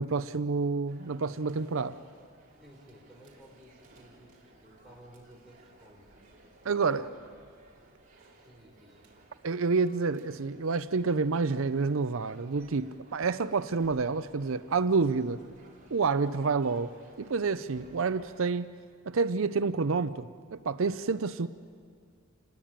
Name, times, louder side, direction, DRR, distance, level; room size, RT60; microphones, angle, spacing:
voice 1, 0.0-2.0 6.6-7.0 9.4-15.4 15.9-16.9 17.2-18.7 19.1-21.5, right 4 dB, 70° right, 12 dB, 0.6 m, -28 dB
sound 1, 0.9-18.5, right 2 dB, 40° right, 3.7 m, -58 dB
voice 2, 2.5-6.1 6.7-7.1 8.3-9.0, equal, ahead, -2 dB, 4.3 m, -55 dB
28.0 x 20.5 x 8.9 m, 2.2 s
head